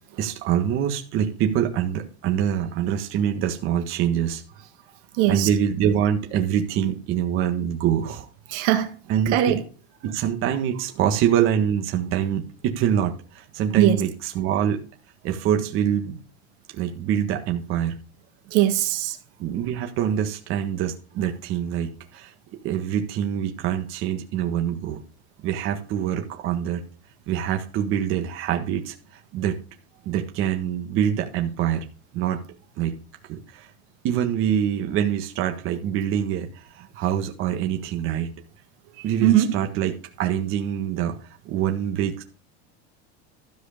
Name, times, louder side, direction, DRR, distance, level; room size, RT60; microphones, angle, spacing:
voice 1, 0.2-4.4 5.3-8.3 9.1-9.6 10.0-14.8 15.2-16.2 16.7-18.0 19.4-25.0 25.4-26.8 27.3-28.9 29.3-29.6 30.0-31.8 32.1-32.4 32.8-33.0 33.3-33.7 34.0-38.3 39.0-41.2 41.4-42.2, right 9 dB, 40° right, 1.6 m, -25 dB
voice 2, 5.2-5.5 8.5-8.9 9.3-9.6 13.8-14.0 18.5-19.2 39.2-39.5, right 13 dB, 60° right, 1.6 m, -19 dB
13.0 x 4.8 x 6.6 m
supercardioid pair, 160°, 32 cm